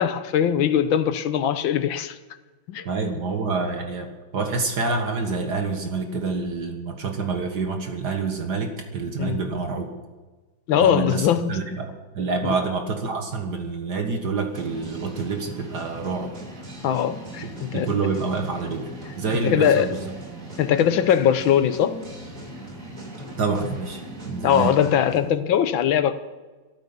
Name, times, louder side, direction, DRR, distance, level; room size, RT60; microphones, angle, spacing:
voice 1, 0.0-2.2 2.7-3.1 9.2-9.4 10.7-11.6 12.4-12.6 16.8-17.9 19.4-19.9 20.6-22.0 24.4-26.1, left 9 dB, 80° left, 1.7 m, -21 dB
voice 2, 2.9-9.9 10.7-16.3 17.4-20.1 23.4-24.7, right 4 dB, 60° right, 2.0 m, -27 dB
sound 1, 14.5-25.3, right 1 dB, 40° right, 3.3 m, -39 dB
13.5 x 13.0 x 7.1 m
omnidirectional pair, 2.1 m